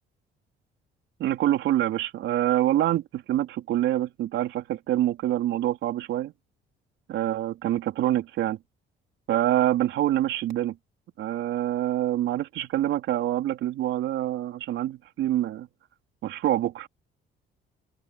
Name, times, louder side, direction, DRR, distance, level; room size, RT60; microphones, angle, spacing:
voice 1, 1.2-6.3 7.1-8.6 9.3-10.7 11.2-15.7 16.2-16.9, right 13 dB, 75° right, 3.8 m, -26 dB
open air
cardioid pair, 85°, 20 cm